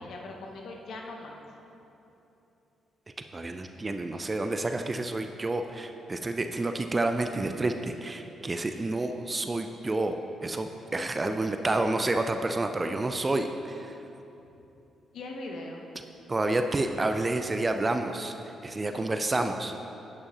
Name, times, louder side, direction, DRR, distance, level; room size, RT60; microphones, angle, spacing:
voice 1, 0.0-1.4 15.1-15.8 18.9-19.1, left 2 dB, 60° left, 1 dB, 0.9 m, -40 dB
voice 2, 3.3-14.0 16.3-18.3 18.6-19.8, right 2 dB, 30° right, 6 dB, 0.5 m, -29 dB
11.0 x 8.6 x 3.0 m, 3.0 s
hypercardioid pair, 40°, 0 cm